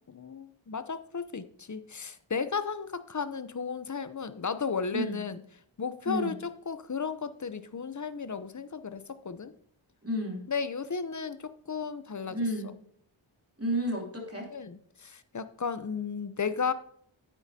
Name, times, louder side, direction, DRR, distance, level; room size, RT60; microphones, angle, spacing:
voice 1, 0.1-5.4 5.8-9.5 10.5-12.4 14.5-16.7, left 5 dB, 35° left, 13 dB, 0.7 m, -34 dB
voice 2, 10.0-10.4 12.3-12.7 13.6-14.5, equal, 30° right, 0 dB, 2.9 m, -31 dB
9.5 x 9.2 x 2.8 m, 0.65 s
wide cardioid pair, 50°, 49 cm